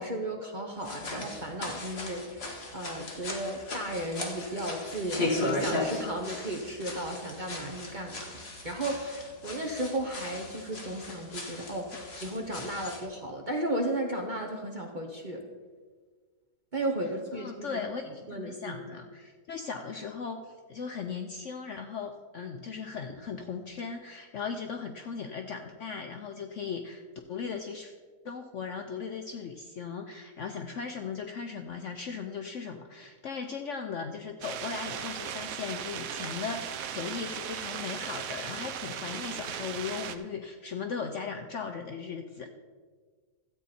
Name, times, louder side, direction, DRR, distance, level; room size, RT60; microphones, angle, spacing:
voice 1, 0.0-8.3 8.6-15.4 16.7-17.8 18.3-18.8, right 1 dB, 35° right, 2 dB, 0.8 m, -34 dB
sound 1, 0.8-13.0, left 2 dB, 40° left, 1.6 m, -37 dB
voice 2, 17.3-27.0 27.3-27.9 28.2-42.5, left 5 dB, 65° left, 5 dB, 0.8 m, -38 dB
sound 2, 34.4-40.2, right 8 dB, 65° right, 1.0 m, -37 dB
13.0 x 8.3 x 4.2 m, 1.5 s
omnidirectional pair, 1.8 m